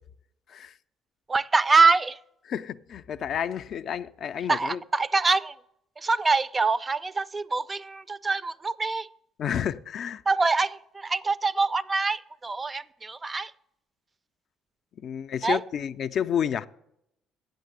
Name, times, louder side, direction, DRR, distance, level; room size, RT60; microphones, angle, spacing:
voice 1, 1.3-2.2 4.5-5.5 6.0-9.1 10.3-13.5 15.4-15.6, right 4 dB, 30° right, 0.4 m, -24 dB
voice 2, 2.5-4.8 9.4-10.2 15.0-16.7, left 8 dB, 60° left, 0.4 m, -30 dB
8.6 x 6.6 x 7.9 m
supercardioid pair, 75°, 0 cm